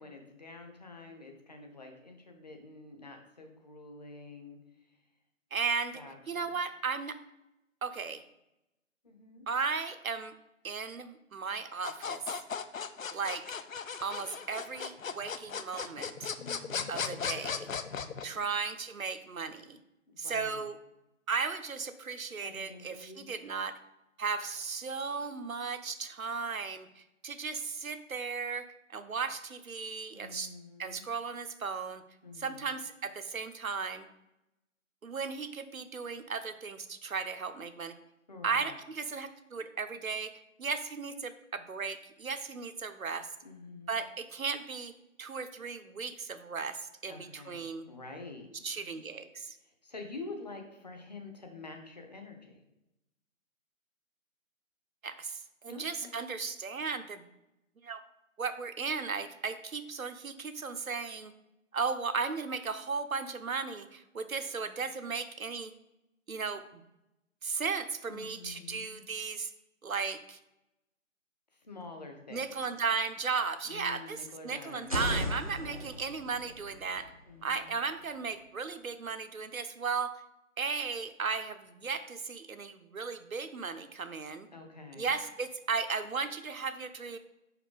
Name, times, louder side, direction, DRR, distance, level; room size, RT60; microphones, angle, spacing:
voice 1, 0.0-5.0 5.9-6.6 9.0-9.5 16.4-18.5 20.1-20.7 22.4-23.3 30.1-31.1 32.2-32.7 38.3-38.7 43.4-44.0 47.1-47.6 47.9-48.8 49.6-52.6 55.7-56.4 68.1-69.0 71.5-72.8 73.6-76.0 77.3-77.8 84.5-85.2, left 3 dB, 30° left, 3 dB, 0.9 m, -48 dB
voice 2, 5.5-6.0 6.3-7.2 7.8-8.2 9.5-10.3 10.6-12.2 13.1-13.4 14.0-16.3 16.9-17.7 18.2-19.8 20.2-20.8 21.3-23.8 24.2-28.7 28.9-30.5 30.8-32.0 32.4-34.1 35.0-37.9 38.4-43.3 43.9-44.9 45.2-47.9 48.6-49.6 55.0-57.2 57.8-58.0 58.4-61.3 61.7-65.7 66.3-66.6 67.4-69.5 69.8-70.4 72.3-74.2 74.4-77.1 77.4-80.1 80.6-84.5 85.0-87.2, right 5 dB, 85° right, 10 dB, 0.8 m, -35 dB
sound 1, 11.8-18.2, left 6 dB, 75° left, 0.6 m, -37 dB
sound 2, 74.7-78.6, left 1 dB, 30° right, 0.5 m, -38 dB
5.6 x 5.0 x 4.8 m, 0.91 s
figure-of-eight pair, 160°, 40 cm